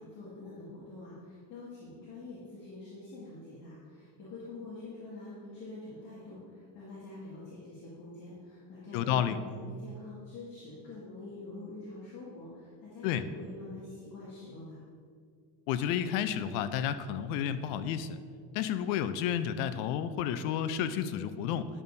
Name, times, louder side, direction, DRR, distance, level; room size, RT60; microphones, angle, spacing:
voice 1, 0.0-14.8, left 2 dB, 40° left, -9 dB, 2.0 m, -46 dB
voice 2, 8.9-9.4 13.0-13.2 15.7-18.2 18.5-21.7, left 9 dB, 65° left, 12 dB, 0.6 m, -31 dB
11.0 x 6.9 x 2.7 m, 2.2 s
cardioid pair, 155°, 46 cm